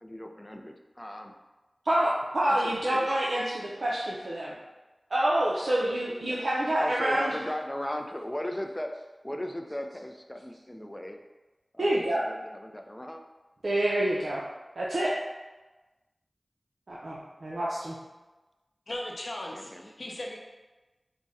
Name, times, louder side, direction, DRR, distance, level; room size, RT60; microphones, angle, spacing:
voice 1, 0.0-1.3 2.5-3.1 6.3-6.4 6.8-8.9 9.2-11.2 11.7-13.2 19.5-19.9, left 1 dB, 20° left, 4 dB, 0.3 m, -37 dB
voice 2, 1.9-4.5 5.1-7.3 11.8-12.2 13.6-14.4 14.8-15.1 16.9-17.9, right 1 dB, 85° right, -6 dB, 0.4 m, -27 dB
voice 3, 18.9-20.4, left 1 dB, 75° left, -2 dB, 0.6 m, -37 dB
3.5 x 2.1 x 4.0 m, 1.1 s
wide cardioid pair, 55°, 0 cm